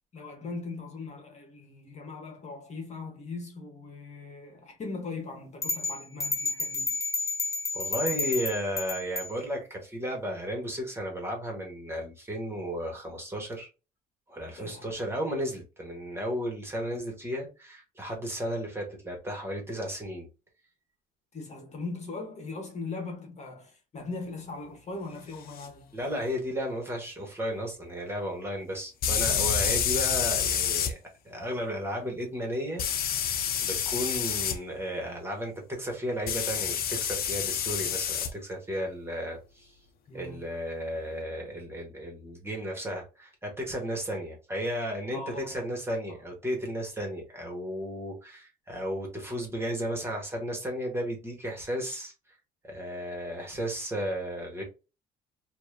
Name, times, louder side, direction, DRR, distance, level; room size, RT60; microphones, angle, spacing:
voice 1, 0.1-7.0 14.6-14.9 21.3-26.0 40.1-40.4 45.1-45.7, left 3 dB, 40° left, 1.5 m, -40 dB
sound 1, 5.6-9.3, left 3 dB, 15° left, 1.4 m, -31 dB
voice 2, 7.7-13.7 14.3-20.3 25.9-31.0 31.2-33.2 33.6-39.7 40.1-52.1 52.6-54.6, equal, 15° right, 1.9 m, -34 dB
sound 2, 25.6-25.7 29.0-30.9 32.8-34.6 36.3-38.3, left 8 dB, 60° left, 0.8 m, -28 dB
4.6 x 2.9 x 2.9 m
cardioid pair, 110°, 17 cm